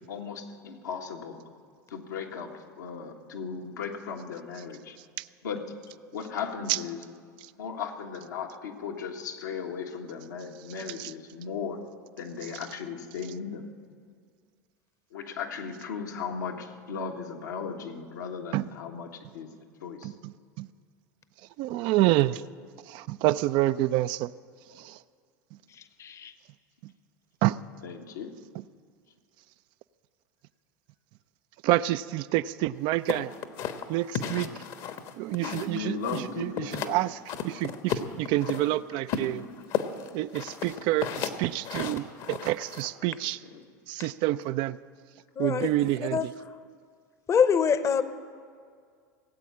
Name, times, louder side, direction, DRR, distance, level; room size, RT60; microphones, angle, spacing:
voice 1, 0.1-1.4 1.9-5.0 5.4-5.7 6.1-7.0 7.6-11.8 12.2-13.7 15.1-19.1 19.3-19.5 19.8-20.1 27.8-28.3 35.4-37.0 38.6-39.0 42.1-42.2 43.0-43.1 43.5-43.7, left 6 dB, 80° left, 1 dB, 1.6 m, -36 dB
voice 2, 20.0-20.7 21.6-22.4 22.9-24.3 24.8-25.0 25.5-25.6 26.8-26.9 27.4-27.6 28.5-28.6 31.6-33.3 33.9-34.5 35.2-39.4 40.1-43.4 43.9-44.8 45.4-46.3, right 16 dB, 55° right, 14 dB, 0.4 m, -28 dB
voice 3, 26.0-26.3 45.4-45.7 46.1-46.2 47.3-48.0, left 7 dB, 30° left, 12 dB, 0.9 m, -24 dB
sound 1, 33.1-35.8 36.0-37.0 37.3-38.6 39.1-42.9, left 8 dB, 55° left, 1.2 m, -33 dB
18.5 x 8.3 x 8.7 m, 2.1 s
hypercardioid pair, 85°, 10 cm